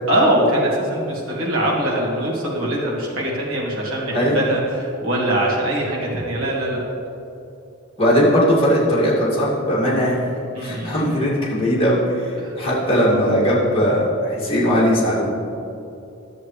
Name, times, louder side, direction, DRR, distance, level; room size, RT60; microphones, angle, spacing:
voice 1, 0.1-6.8 10.5-11.1 12.4-12.6, right 1 dB, 70° right, -4 dB, 1.9 m, -22 dB
voice 2, 8.0-10.2 10.6-15.3, equal, 25° left, -8 dB, 2.1 m, -19 dB
11.5 x 7.3 x 3.2 m, 2.7 s
head